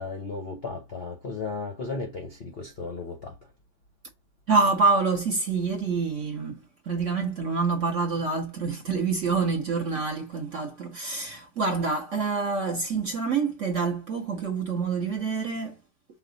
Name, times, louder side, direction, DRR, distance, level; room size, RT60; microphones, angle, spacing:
voice 1, 0.0-3.5, left 4 dB, 50° left, 0.7 m, -35 dB
voice 2, 4.5-15.8, right 4 dB, 55° right, 0.9 m, -27 dB
5.8 x 2.3 x 3.7 m
omnidirectional pair, 2.1 m